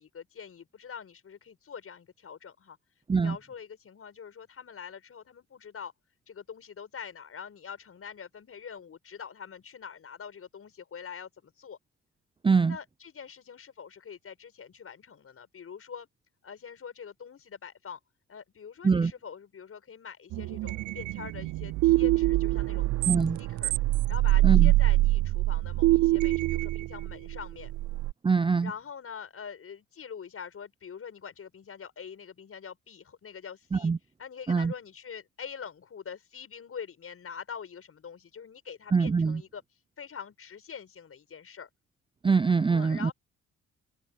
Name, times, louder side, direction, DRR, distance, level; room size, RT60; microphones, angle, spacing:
voice 1, 0.0-2.8 3.1-5.9 6.3-11.8 12.7-16.1 16.4-18.0 18.3-22.9 23.4-23.7 24.1-27.7 28.6-33.9 34.2-41.7 42.7-43.1, left 7 dB, 50° left, 7.1 m, -44 dB
voice 2, 12.4-12.8 18.8-19.1 23.1-23.4 24.4-24.7 28.2-28.7 33.7-34.0 34.5-34.7 38.9-39.4 42.2-43.1, right 5 dB, 15° right, 0.5 m, -23 dB
sound 1, 20.3-28.1, right 18 dB, 70° right, 0.4 m, -25 dB
open air
cardioid pair, 90°, 30 cm